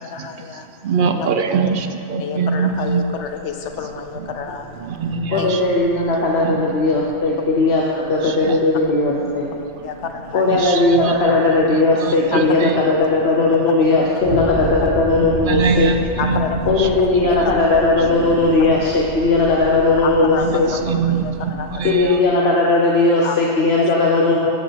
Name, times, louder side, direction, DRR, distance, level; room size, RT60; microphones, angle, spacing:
voice 1, 0.0-0.7 1.1-1.3 2.2-4.9 5.4-5.5 9.8-10.6 12.3-12.6 16.2-16.6 17.0-17.4 20.0-21.8 23.2-23.4 23.8-23.9, left 6 dB, 90° left, 6 dB, 1.1 m, -29 dB
voice 2, 0.8-3.1 4.2-4.3 4.8-5.6 6.4-6.9 8.2-8.6 10.5-11.3 11.7-12.8 13.5-13.6 15.2-16.9 17.2-17.3 18.2-18.3 18.7-18.8 20.4-22.5, right 5 dB, 60° right, 7 dB, 0.6 m, -23 dB
sound 1, 3.2-22.0, right 1 dB, 30° right, 1.8 m, -33 dB
voice 3, 5.3-9.5 10.3-16.0 16.7-20.7 21.8-24.5, left 2 dB, 65° left, -3 dB, 1.1 m, -17 dB
12.5 x 8.0 x 3.5 m, 2.4 s
omnidirectional pair, 1.2 m